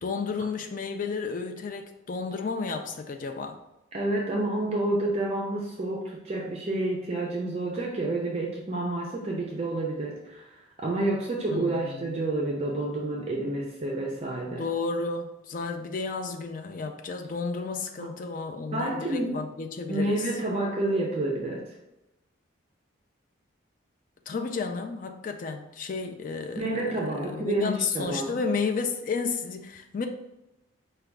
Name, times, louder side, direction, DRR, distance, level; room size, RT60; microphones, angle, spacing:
voice 1, 0.0-3.6 11.5-12.1 14.6-20.3 24.3-30.1, left 4 dB, 40° left, 5 dB, 0.3 m, -32 dB
voice 2, 3.9-14.6 18.0-18.1 18.7-19.3 19.9-21.8 26.6-28.4, right 2 dB, 30° right, -2 dB, 0.4 m, -29 dB
4.8 x 2.3 x 3.4 m, 0.93 s
head